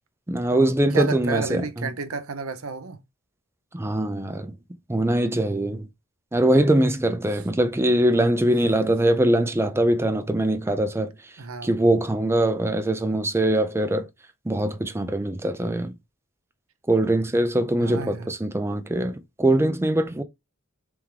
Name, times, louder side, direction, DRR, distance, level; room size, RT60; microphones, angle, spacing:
voice 1, 0.3-1.9 3.7-4.6 4.9-5.9 6.3-11.3 11.6-14.1 14.4-15.9 16.9-20.2, right 1 dB, 10° right, 0.4 m, -22 dB
voice 2, 0.9-3.0 11.4-11.7 17.8-18.3, right 4 dB, 70° right, 0.7 m, -31 dB
3.5 x 3.4 x 3.2 m
head